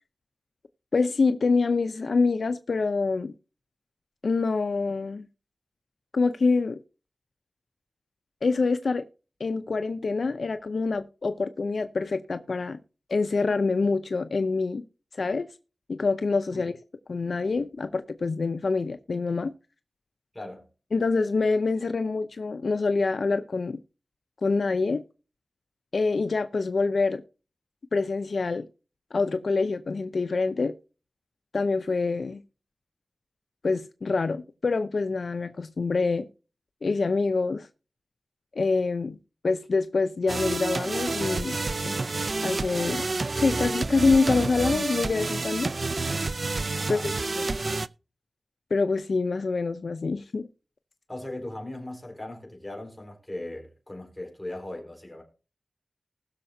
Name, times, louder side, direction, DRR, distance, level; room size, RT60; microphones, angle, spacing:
voice 1, 0.9-3.3 4.2-5.2 6.1-6.8 8.4-9.0 9.4-12.8 13.1-14.8 15.2-15.5 15.9-16.7 17.1-19.5 20.9-23.8 24.4-25.0 25.9-27.2 27.9-28.7 29.1-30.7 31.5-32.4 33.6-36.3 36.8-37.7 38.6-39.2 39.4-41.6 41.8-42.0 42.4-43.1 43.3-45.7 46.9-47.5 48.7-50.5, left 4 dB, 80° left, 0.6 m, -26 dB
voice 2, 20.3-20.7 46.8-47.1 51.1-55.2, left 1 dB, 10° left, 4.4 m, -38 dB
sound 1, 40.3-47.9, right 3 dB, 55° right, 0.4 m, -29 dB
20.0 x 6.6 x 2.7 m
wide cardioid pair, 80°, 0 cm